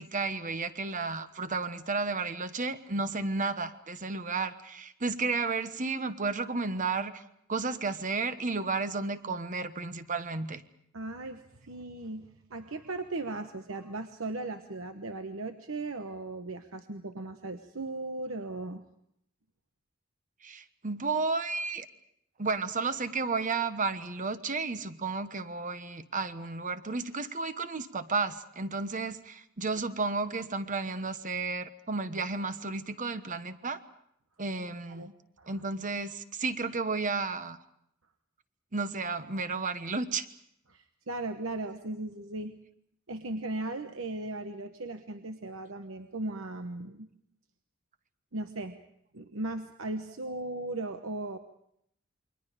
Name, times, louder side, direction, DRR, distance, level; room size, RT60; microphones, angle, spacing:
voice 1, 0.0-7.2 7.5-10.6 20.4-21.9 22.4-33.8 34.4-35.1 35.5-37.6 38.7-40.3, right 4 dB, 40° right, 11 dB, 1.2 m, -32 dB
voice 2, 10.9-18.8 35.0-35.1 35.4-35.5 40.7-42.6 43.1-47.1 48.3-48.8 49.1-51.4, right 2 dB, 70° right, 7 dB, 1.1 m, -37 dB
28.5 x 23.5 x 5.1 m, 0.73 s
head